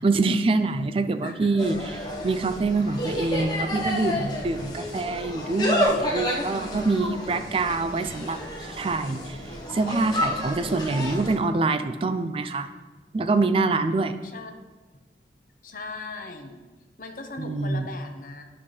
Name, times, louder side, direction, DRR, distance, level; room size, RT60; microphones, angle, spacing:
voice 1, 0.0-1.8 2.2-9.4 9.7-12.7 13.1-14.2 17.4-17.9, right 3 dB, 30° right, 10 dB, 0.3 m, -25 dB
voice 2, 1.2-1.6 7.5-8.0 14.2-14.5 15.6-16.6 17.0-18.4, left 3 dB, 50° left, 4 dB, 0.7 m, -39 dB
Insect, 1.6-11.4, left 1 dB, 25° left, 0.9 m, -30 dB
10.0 x 5.5 x 3.2 m, 1.3 s
head